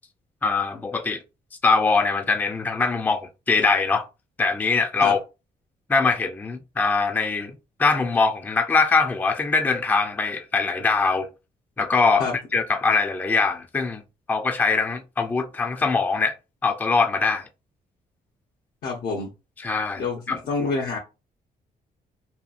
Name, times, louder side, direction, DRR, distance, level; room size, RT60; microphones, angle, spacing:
voice 1, 0.4-1.2 1.6-4.0 4.4-5.2 5.9-11.3 11.8-14.0 14.3-16.3 16.6-17.4 19.6-20.4, left 4 dB, 10° left, 0.3 m, -22 dB
voice 2, 18.8-19.3 20.0-21.0, left 4 dB, 80° left, 0.7 m, -27 dB
2.7 x 2.3 x 2.5 m
cardioid pair, 110°, 16 cm